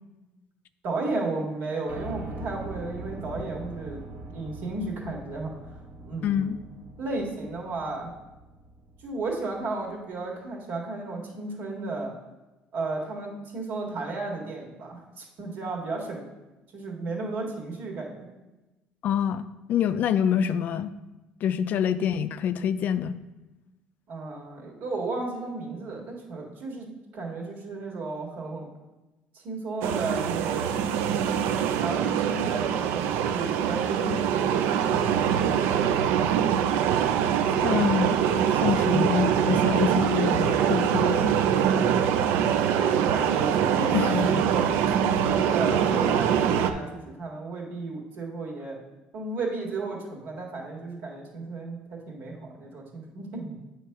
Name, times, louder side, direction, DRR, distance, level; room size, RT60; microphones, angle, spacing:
voice 1, 0.8-4.0 4.3-5.5 6.0-6.6 7.0-8.1 9.0-12.1 12.7-16.2 16.7-18.3 24.1-28.7 29.3-30.9 31.6-35.9 42.9-48.8 49.1-53.6, right 3 dB, 65° right, -1 dB, 1.8 m, -34 dB
Piano, 1.9-9.9, right 2 dB, 40° right, 0.9 m, -42 dB
voice 2, 6.2-6.6 19.0-19.4 19.7-20.9 21.4-23.2 37.6-41.3 43.9-44.4, left 9 dB, 55° left, 12 dB, 0.3 m, -26 dB
sound 1, 29.8-46.7, right 8 dB, 85° right, 0.4 m, -24 dB
8.3 x 3.1 x 5.8 m, 1.1 s
cardioid pair, 130°, 4 cm